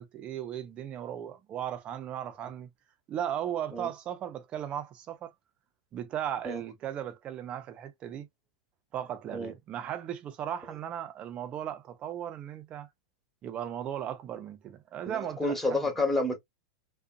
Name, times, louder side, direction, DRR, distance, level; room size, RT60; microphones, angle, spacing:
voice 1, 0.0-2.7 3.1-5.3 5.9-8.3 8.9-12.9 13.4-15.8, right 10 dB, 35° right, 0.7 m, -36 dB
voice 2, 15.1-16.4, left 2 dB, 5° left, 1.2 m, -29 dB
2.5 x 2.3 x 2.5 m
hypercardioid pair, 105°, 4 cm